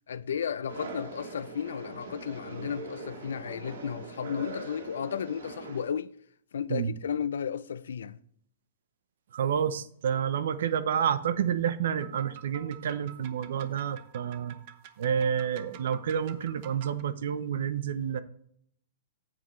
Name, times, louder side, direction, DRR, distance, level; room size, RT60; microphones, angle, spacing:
voice 1, 0.1-6.1 6.5-8.2, left 8 dB, 85° left, 0.5 m, -34 dB
sound 1, 0.7-5.8, right 2 dB, 90° right, 2.3 m, -42 dB
voice 2, 9.3-14.6 15.0-18.2, right 8 dB, 70° right, 0.8 m, -29 dB
sound 2, 12.0-17.0, right 11 dB, 45° right, 0.9 m, -50 dB
9.2 x 7.8 x 3.2 m
hypercardioid pair, 150°, 0 cm